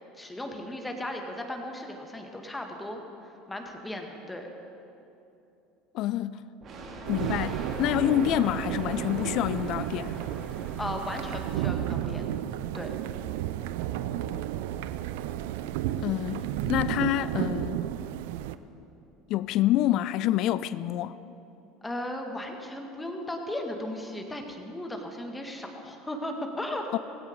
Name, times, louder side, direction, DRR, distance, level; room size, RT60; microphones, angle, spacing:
voice 1, 0.2-3.0 3.5-4.5 10.8-12.3 12.7-12.9 21.8-27.0, left 1 dB, 10° left, 1.9 m, -36 dB
voice 2, 5.9-6.4 7.1-10.1 16.0-17.9 19.3-21.2 26.9-27.0, left 13 dB, 50° left, 0.4 m, -27 dB
Thunder, 6.6-12.0, right 3 dB, 40° right, 2.5 m, -40 dB
sound 1, 7.0-18.6, right 12 dB, 60° right, 0.5 m, -32 dB
19.5 x 16.5 x 3.7 m
figure-of-eight pair, 70°, 0 cm